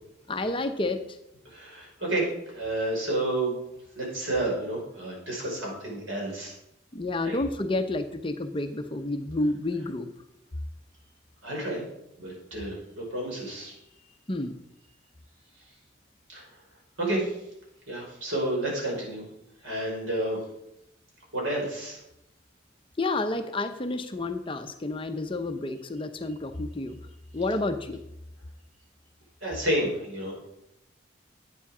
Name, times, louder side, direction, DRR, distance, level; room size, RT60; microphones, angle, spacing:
voice 1, 0.3-1.2 6.9-10.1 14.3-14.5 23.0-27.0 27.3-28.0, left 2 dB, 25° left, 7 dB, 0.7 m, -30 dB
voice 2, 1.4-3.6 3.9-6.5 7.2-7.4 11.4-11.8 12.2-13.7 16.3-16.5 17.0-17.4 17.9-19.2 19.6-20.4 21.3-22.0 29.4-30.5, right 1 dB, 85° right, -2 dB, 5.1 m, -30 dB
11.0 x 8.4 x 4.9 m, 0.83 s
head